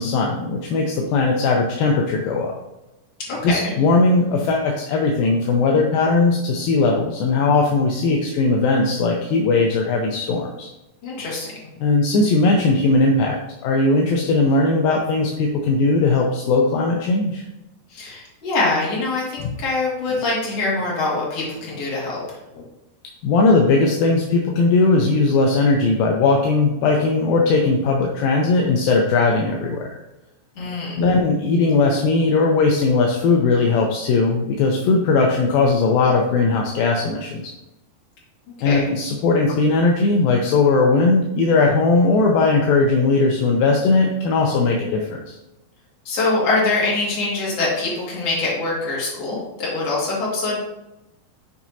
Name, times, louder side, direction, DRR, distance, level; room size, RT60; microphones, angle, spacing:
voice 1, 0.0-2.5 3.4-10.7 11.8-17.4 19.4-19.6 23.2-29.9 31.0-37.5 38.6-45.4, left 3 dB, 80° left, 0 dB, 2.1 m, -18 dB
voice 2, 3.3-3.6 11.0-11.5 17.9-22.2 22.5-22.6 30.6-31.0 38.6-38.9 46.1-50.6, left 3 dB, 45° left, -5 dB, 2.4 m, -24 dB
7.2 x 5.9 x 2.7 m, 0.95 s
omnidirectional pair, 4.8 m